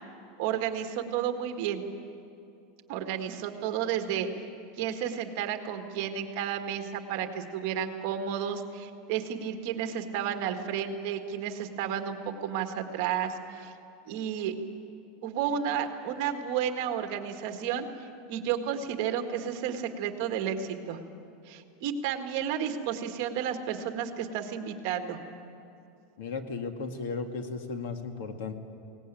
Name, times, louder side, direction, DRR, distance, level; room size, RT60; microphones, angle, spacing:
voice 1, 0.4-1.8 2.9-4.3 4.8-13.7 14.1-14.6 15.2-17.9 18.3-21.0 21.5-25.2, right 9 dB, 45° right, 6 dB, 1.7 m, -32 dB
voice 2, 26.2-28.5, left 4 dB, 70° left, 6 dB, 2.0 m, -35 dB
22.5 x 18.5 x 9.1 m, 2.7 s
supercardioid pair, 175°, 0 cm